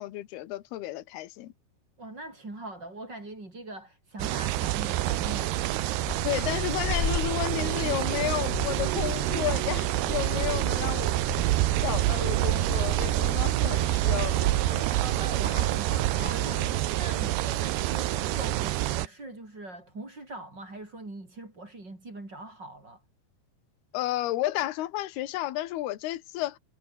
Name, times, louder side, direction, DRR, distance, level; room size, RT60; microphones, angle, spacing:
voice 1, 0.0-1.5 6.2-11.1 11.8-14.9 23.9-26.6, left 15 dB, 75° left, 3.3 m, -32 dB
voice 2, 2.0-5.6 15.0-23.0, right 2 dB, 25° right, 7.4 m, -42 dB
sound 1, 4.2-19.1, right 16 dB, 80° right, 3.1 m, -27 dB
sound 2, 4.7-17.5, left 4 dB, 45° left, 0.8 m, -39 dB
omnidirectional pair, 4.8 m